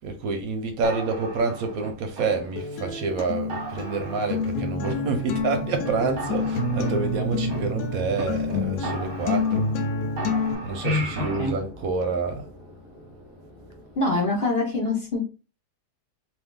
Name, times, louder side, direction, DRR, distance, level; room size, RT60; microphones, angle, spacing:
voice 1, 0.0-9.6 10.6-12.5, right 4 dB, 70° right, 0.9 m, -28 dB
sound 1, 0.8-2.8 3.2-3.3 3.5-4.5 4.8-5.5 5.8-5.9 6.2-8.2 8.5-8.6 8.8-9.9 10.2-11.5, right 3 dB, 45° right, 0.8 m, -37 dB
Acoustic guitar, 2.6-10.5, left 3 dB, 90° left, 1.2 m, -28 dB
sound 2, 4.3-14.4, equal, 20° left, 1.0 m, -44 dB
voice 2, 14.0-15.2, left 2 dB, 55° left, 0.7 m, -24 dB
2.7 x 2.5 x 3.6 m
omnidirectional pair, 1.7 m